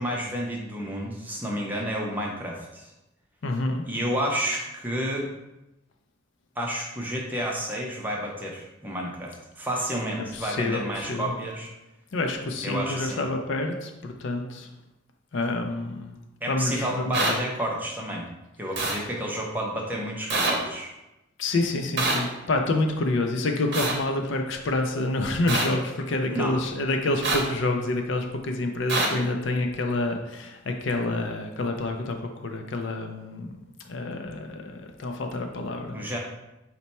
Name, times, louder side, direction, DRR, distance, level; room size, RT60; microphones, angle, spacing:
voice 1, 0.0-2.9 3.8-5.3 6.6-11.7 12.6-13.2 16.4-18.3 18.6-20.9 26.3-26.6 35.9-36.2, equal, 10° right, -2 dB, 0.5 m, -30 dB
voice 2, 3.4-3.8 10.2-11.3 12.1-14.7 15.3-16.2 16.5-17.4 18.9-19.1 21.4-33.6 33.9-36.0, left 2 dB, 60° left, 4 dB, 0.4 m, -28 dB
sound 1, 17.1-17.3 18.8-18.9 20.3-20.5 22.0-22.2 23.7-23.9 25.5-25.6 27.2-27.4 28.9-29.1, right 2 dB, 55° right, 0.7 m, -24 dB
4.1 x 2.2 x 4.1 m, 0.95 s
head